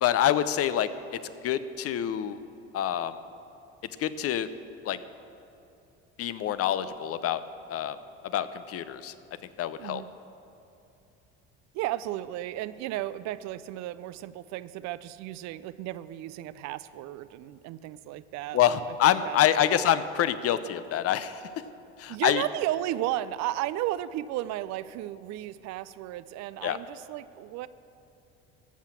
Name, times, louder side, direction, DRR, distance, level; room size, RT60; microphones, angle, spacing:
voice 1, 0.0-0.9 1.4-2.4 2.7-3.2 4.0-4.5 4.8-5.0 6.2-7.4 7.7-8.0 8.3-9.1 9.6-10.0 18.5-21.5 22.0-22.4 26.6-26.8, left 11 dB, 45° left, 13 dB, 0.7 m, -26 dB
voice 2, 11.7-18.9 19.2-19.4 19.7-19.8 22.1-27.7, right 14 dB, 55° right, 16 dB, 0.5 m, -34 dB
14.5 x 5.7 x 7.3 m, 2.8 s
hypercardioid pair, 70°, 33 cm